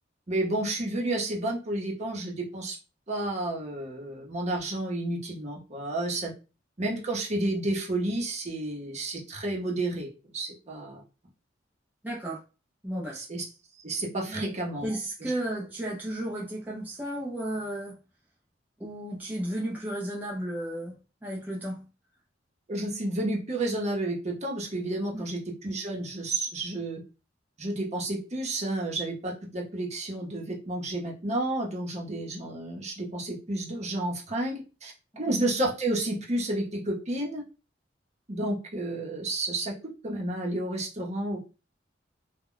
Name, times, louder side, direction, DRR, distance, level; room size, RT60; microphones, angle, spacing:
voice 1, 0.3-2.8 3.1-6.3 6.8-10.1 10.3-11.0 13.3-13.4 13.8-14.9 15.2-15.3 22.7-27.0 27.6-37.4 38.3-39.7 40.0-41.6, right 1 dB, 40° right, 0.8 m, -31 dB
voice 2, 12.0-12.4 12.8-13.3 14.2-14.5 14.8-18.0 18.8-20.9 21.2-21.8 25.1-25.2 35.2-35.4, right 1 dB, 10° right, 0.6 m, -33 dB
2.2 x 2.2 x 3.7 m
head